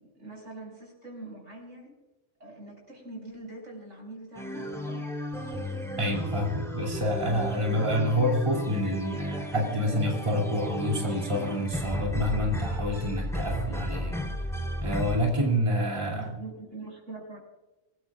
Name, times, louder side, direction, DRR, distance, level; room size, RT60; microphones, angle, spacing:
voice 1, 0.1-1.9 2.4-5.1 16.1-17.4, right 2 dB, 80° right, 0 dB, 6.4 m, -43 dB
sound 1, 4.3-15.2, equal, ahead, 3.4 m, -34 dB
voice 2, 6.0-14.2 14.8-16.3, equal, 25° right, -2 dB, 2.9 m, -27 dB
26.5 x 19.5 x 2.4 m, 1.1 s
omnidirectional pair, 1.2 m